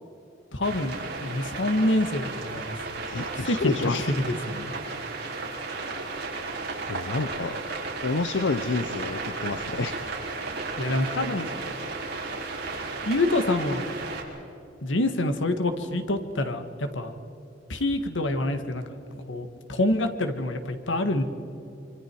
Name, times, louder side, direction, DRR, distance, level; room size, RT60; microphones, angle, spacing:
voice 1, 0.5-2.8 3.3-3.6 4.3-4.7 10.8-11.5 13.1-13.8 14.8-17.1 17.7-18.8 19.3-21.2, left 1 dB, 85° left, 7 dB, 1.8 m, -26 dB
sound 1, 0.6-14.2, right 3 dB, 60° right, 4.2 m, -34 dB
voice 2, 3.1-4.1 6.9-7.6 8.0-10.0, left 3 dB, 70° left, 10 dB, 0.8 m, -29 dB
26.0 x 25.5 x 4.7 m, 2.8 s
head